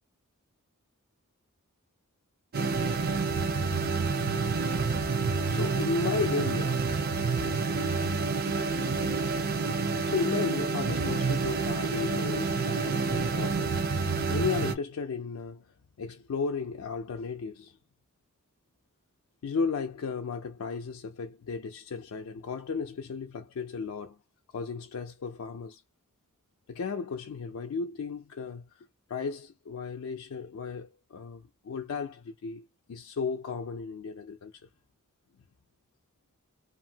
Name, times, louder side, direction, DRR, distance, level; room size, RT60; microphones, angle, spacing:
sound 1, 2.5-14.8, right 4 dB, 45° right, 0.5 m, -28 dB
voice 1, 5.5-6.9 7.3-7.4 8.6-8.8 10.0-13.8 14.3-15.7 16.0-17.8 19.4-24.2 24.5-25.8 26.7-34.5, left 4 dB, 75° left, 0.4 m, -34 dB
2.7 x 2.5 x 2.7 m
head